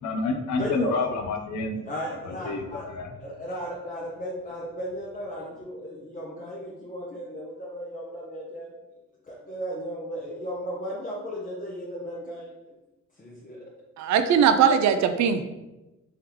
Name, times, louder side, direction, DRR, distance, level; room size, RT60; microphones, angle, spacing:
voice 1, 0.0-1.8 2.2-3.1, left 3 dB, 70° left, 6 dB, 0.6 m, -29 dB
voice 2, 0.6-0.9 1.9-2.8 3.2-8.7 9.2-12.7 13.2-13.6, equal, 25° left, -5 dB, 0.8 m, -35 dB
voice 3, 14.0-15.4, right 7 dB, 65° right, 9 dB, 0.4 m, -20 dB
3.5 x 3.5 x 2.9 m, 1.0 s
cardioid pair, 90°, 30 cm